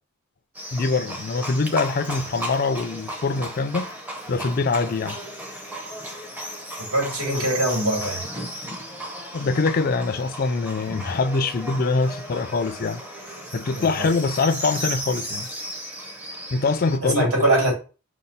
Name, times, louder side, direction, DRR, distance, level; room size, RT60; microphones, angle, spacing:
Livestock farm animals working animals, 0.5-17.0, equal, 10° right, 0.5 m, -35 dB
voice 1, 0.7-3.9 4.3-5.2 9.3-13.0 13.5-15.5 16.5-17.3, left 4 dB, 45° left, 0.4 m, -24 dB
voice 2, 6.9-8.2 13.7-14.1 17.0-17.7, right 1 dB, 85° right, 2.4 m, -22 dB
5.3 x 2.3 x 4.0 m
head